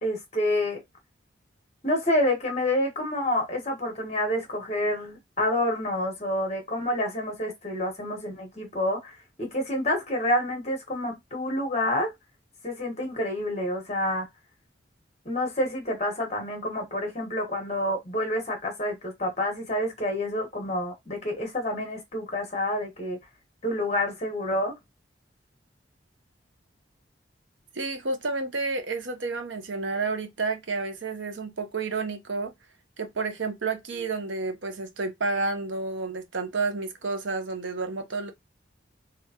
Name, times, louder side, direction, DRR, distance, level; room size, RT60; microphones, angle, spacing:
voice 1, 0.0-0.8 1.8-12.1 12.6-14.3 15.2-23.2 23.6-24.8, left 1 dB, 35° left, 1.5 m, -28 dB
voice 2, 27.7-32.5 33.0-38.3, right 3 dB, 85° right, 0.9 m, -30 dB
3.5 x 3.5 x 2.9 m
head